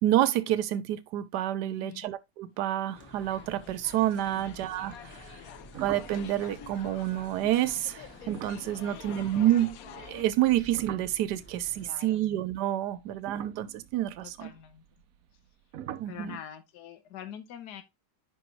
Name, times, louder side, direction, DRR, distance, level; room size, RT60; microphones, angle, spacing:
voice 1, 0.0-5.4 5.8-14.5 16.0-16.4, right 13 dB, 90° right, 1.3 m, -28 dB
voice 2, 1.6-2.1 4.3-4.7 5.4-5.7 8.8-9.5 11.8-12.2 14.2-14.8 16.1-17.8, left 10 dB, 85° left, 1.4 m, -46 dB
sound 1, 2.7-10.2, left 10 dB, 65° left, 1.1 m, -48 dB
sound 2, 2.9-11.9, right 1 dB, 10° left, 1.2 m, -52 dB
sound 3, 5.7-10.1 10.3-12.5 13.1-15.5 15.7-16.3, right 11 dB, 70° right, 0.9 m, -45 dB
10.0 x 4.8 x 3.1 m
omnidirectional pair, 1.7 m